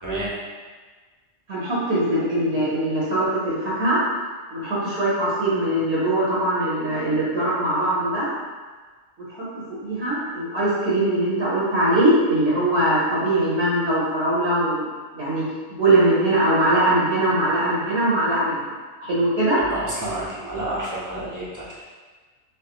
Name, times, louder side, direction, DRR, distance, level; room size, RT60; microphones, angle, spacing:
voice 1, 1.5-4.0 4.5-8.3 9.4-14.9 15.1-15.4 15.7-18.7 19.0-19.6, right 1 dB, 60° right, -8 dB, 1.2 m, -21 dB
voice 2, 19.6-21.8, right 1 dB, 20° right, -8 dB, 0.8 m, -30 dB
3.5 x 3.2 x 2.9 m, 1.4 s
omnidirectional pair, 1.2 m